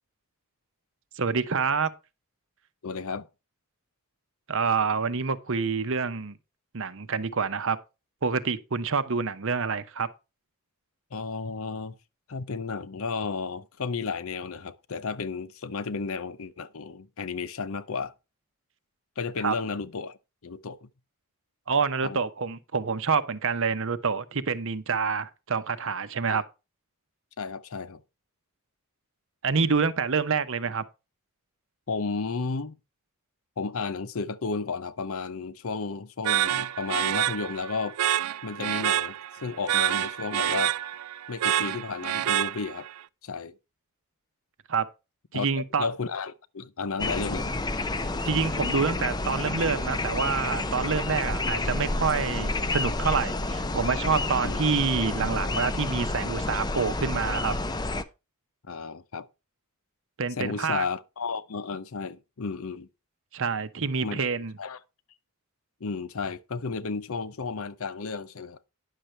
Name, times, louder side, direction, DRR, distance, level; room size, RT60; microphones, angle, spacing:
voice 1, 1.2-1.9 4.5-6.4 6.7-7.8 8.2-10.1 19.4-19.6 21.7-26.4 29.4-30.8 44.7-44.9 45.3-45.9 48.2-57.5 60.2-60.8 63.3-64.5, right 5 dB, 60° right, 0.9 m, -27 dB
voice 2, 2.8-3.3 11.1-11.9 12.3-18.1 19.2-20.2 20.4-20.9 22.0-22.2 26.3-26.4 27.4-28.0 31.9-32.8 33.6-38.0 38.4-40.7 41.3-42.9 43.2-43.5 45.3-45.5 45.8-47.5 51.0-51.1 54.4-54.6 58.7-59.3 60.4-62.9 64.0-64.3 64.6-64.8 65.8-68.6, left 4 dB, 70° left, 0.7 m, -33 dB
sound 1, 36.2-43.0, right 11 dB, 90° right, 0.4 m, -27 dB
sound 2, 47.0-58.0, left 2 dB, 20° left, 0.6 m, -29 dB
10.0 x 6.6 x 4.4 m
head